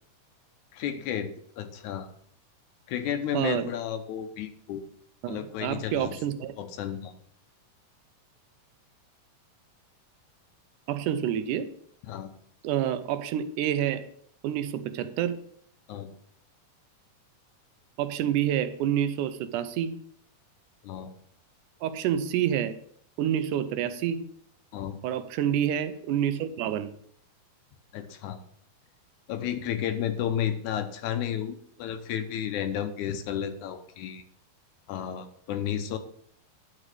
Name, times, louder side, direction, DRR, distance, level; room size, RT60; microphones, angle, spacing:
voice 1, 0.7-2.1 2.9-4.8 5.3-6.2 6.6-7.1 12.1-12.3 15.9-16.1 20.8-21.1 24.7-25.0 27.9-28.4 29.3-34.2 34.9-36.0, left 9 dB, 80° left, 9 dB, 2.0 m, -32 dB
voice 2, 3.3-3.7 5.2-6.5 10.9-11.7 12.6-14.1 14.4-15.4 18.0-20.0 21.8-22.8 23.2-24.3 25.0-26.9, right 10 dB, 85° right, 12 dB, 2.1 m, -28 dB
11.0 x 4.9 x 4.8 m, 0.63 s
omnidirectional pair, 3.7 m